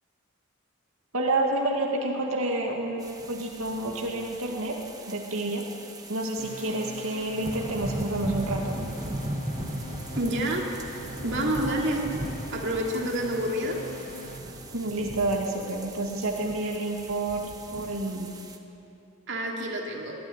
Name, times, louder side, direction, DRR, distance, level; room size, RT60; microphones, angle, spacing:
voice 1, 1.1-4.7 5.1-5.6 6.1-8.8 14.7-18.4, right 2 dB, 85° right, -1 dB, 2.2 m, -29 dB
sound 1, 3.0-18.6, right 1 dB, 20° right, 1.2 m, -38 dB
sound 2, 6.4-14.4, left 1 dB, 40° left, 2.7 m, -43 dB
voice 2, 10.2-10.7 11.2-12.1 12.5-13.8 19.3-20.1, right 1 dB, 60° right, -1 dB, 2.6 m, -28 dB
20.5 x 13.5 x 10.0 m, 2.8 s
head